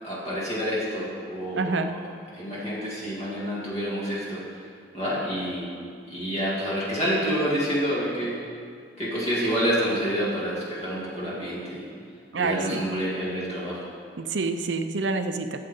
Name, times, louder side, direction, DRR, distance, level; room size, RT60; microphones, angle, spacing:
voice 1, 0.0-1.8 2.3-4.4 4.9-5.7 6.1-8.4 9.0-11.9 12.3-13.9, equal, 35° left, -7 dB, 2.3 m, -28 dB
voice 2, 1.6-1.9 12.3-12.8 14.2-15.6, right 3 dB, 75° right, 8 dB, 0.6 m, -27 dB
13.0 x 7.8 x 3.8 m, 2.2 s
head